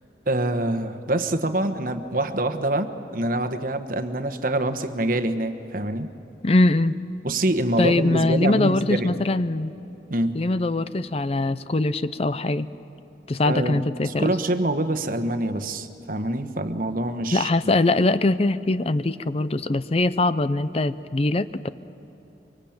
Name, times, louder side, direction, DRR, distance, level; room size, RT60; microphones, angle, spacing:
voice 1, 0.3-6.1 7.2-9.1 10.1-10.4 13.4-17.5, right 1 dB, 50° right, 7 dB, 1.3 m, -25 dB
voice 2, 6.4-7.0 7.8-9.7 10.3-12.7 13.3-14.3 17.3-21.7, left 2 dB, 35° left, 14 dB, 0.5 m, -22 dB
24.5 x 24.0 x 8.9 m, 3.0 s
head